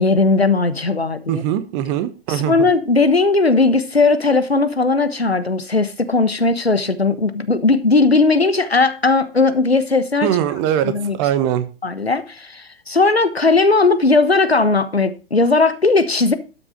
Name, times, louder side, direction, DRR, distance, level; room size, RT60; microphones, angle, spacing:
voice 1, 0.0-1.4 2.3-10.3 10.8-11.2 11.8-16.3, left 3 dB, 90° left, 1.2 m, -17 dB
voice 2, 1.3-2.7 10.2-11.7, right 11 dB, 30° right, 1.1 m, -21 dB
12.0 x 6.2 x 5.1 m
figure-of-eight pair, 115°, 30 cm